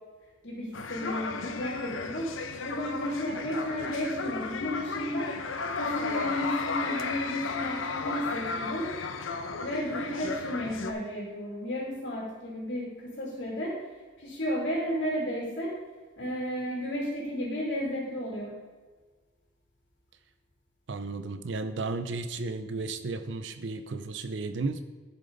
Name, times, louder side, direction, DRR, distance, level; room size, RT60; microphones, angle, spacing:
voice 1, 0.4-5.3 5.8-8.9 9.6-13.7 14.2-15.7 16.2-18.5, equal, 65° left, -4 dB, 2.7 m, -33 dB
sound 1, 0.7-10.9, left 4 dB, 90° left, 0.8 m, -34 dB
voice 2, 20.9-24.8, right 3 dB, 70° right, 9 dB, 0.6 m, -34 dB
11.5 x 6.8 x 4.0 m, 1.4 s
head